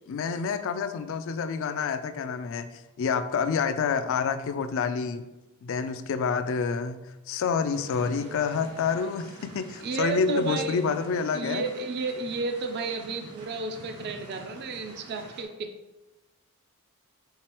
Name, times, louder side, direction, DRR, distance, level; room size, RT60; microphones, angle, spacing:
voice 1, 0.1-5.3 5.6-11.6, left 5 dB, 60° left, 10 dB, 0.3 m, -28 dB
sound 1, 7.7-15.4, right 2 dB, 90° right, 1.0 m, -47 dB
voice 2, 9.8-10.8 11.3-15.7, right 4 dB, 45° right, 6 dB, 0.4 m, -32 dB
4.6 x 3.7 x 2.9 m, 1.0 s
head